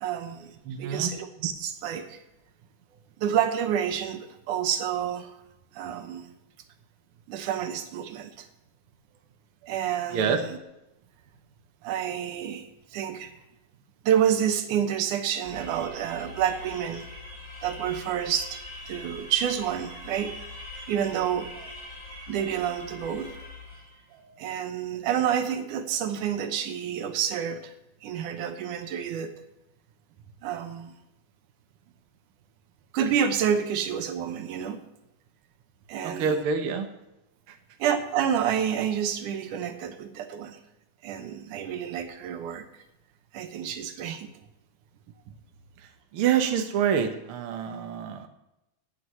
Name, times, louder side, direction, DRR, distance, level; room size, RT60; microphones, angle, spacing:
voice 1, 0.0-2.2 3.2-5.3 5.7-6.3 7.3-8.5 9.6-10.2 11.8-12.6 12.9-13.3 14.0-17.1 17.6-18.6 18.9-20.3 20.9-21.7 22.3-23.3 24.1-27.7 28.0-29.3 30.4-30.9 32.9-34.8 35.9-36.4 37.8-40.6 41.0-42.7 43.3-44.3, right 9 dB, 85° right, 7 dB, 2.5 m, -29 dB
voice 2, 0.6-1.1 10.1-10.4 36.0-36.9 37.5-37.6 45.8-48.3, right 7 dB, 55° right, 5 dB, 1.7 m, -27 dB
sound 1, 15.4-24.0, left 2 dB, 10° left, 3.1 m, -43 dB
17.0 x 9.5 x 3.1 m, 0.91 s
omnidirectional pair, 3.5 m